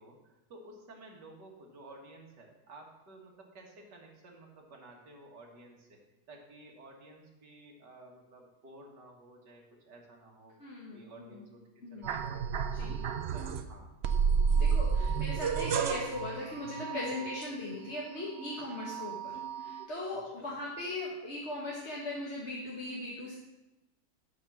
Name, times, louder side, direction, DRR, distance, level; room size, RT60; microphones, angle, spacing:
voice 1, 0.0-6.0 6.3-10.5 10.9-12.9 13.2-13.9 20.2-20.5, right 2 dB, 90° right, 0 dB, 2.4 m, -53 dB
voice 2, 10.6-11.4 11.8-12.1 12.7-13.0 14.5-23.3, left 2 dB, 40° left, -5 dB, 1.8 m, -39 dB
sound 1, 12.0-13.7 14.0-18.0 18.4-19.9, right 6 dB, 65° right, 0.6 m, -31 dB
12.0 x 5.5 x 6.1 m, 1.0 s
omnidirectional pair, 1.8 m